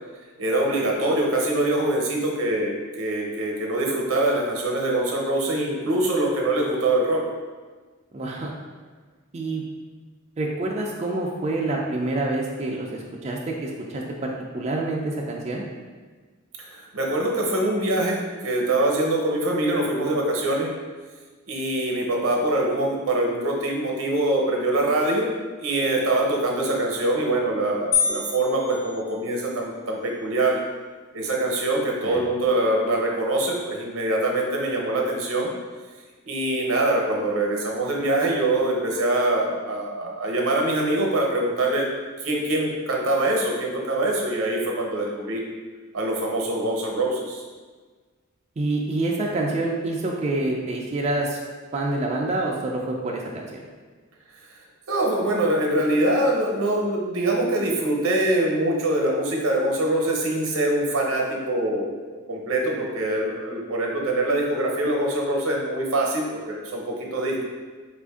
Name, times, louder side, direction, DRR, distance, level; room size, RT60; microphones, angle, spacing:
voice 1, 0.4-7.2 16.6-20.7 21.5-25.3 25.6-30.6 31.1-35.5 36.3-41.8 42.2-45.4 45.9-47.4 54.9-67.5, right 1 dB, 75° right, 0 dB, 0.8 m, -24 dB
voice 2, 8.1-8.5 9.3-9.6 10.4-15.6 32.0-32.2 48.6-51.4 51.7-53.5, right 2 dB, 30° right, -2 dB, 0.4 m, -27 dB
sound 1, 27.9-29.7, left 7 dB, 80° left, 0.9 m, -27 dB
4.3 x 2.5 x 3.5 m, 1.4 s
head